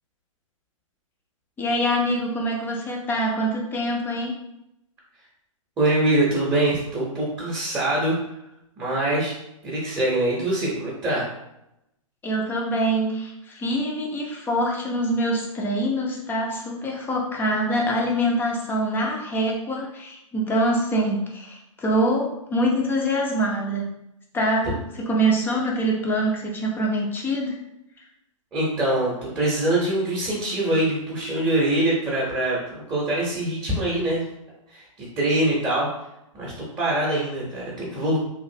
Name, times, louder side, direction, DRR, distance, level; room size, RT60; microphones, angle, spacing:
voice 1, 1.6-4.4 12.2-23.9 24.3-24.7 25.0-27.6, right 1 dB, 10° left, -1 dB, 0.5 m, -24 dB
voice 2, 5.8-8.2 8.8-9.3 9.6-11.3 28.5-34.2 34.7-35.9 36.3-38.2, right 1 dB, 15° right, -5 dB, 0.8 m, -24 dB
3.1 x 2.5 x 2.7 m, 0.85 s
hypercardioid pair, 130°, 17 cm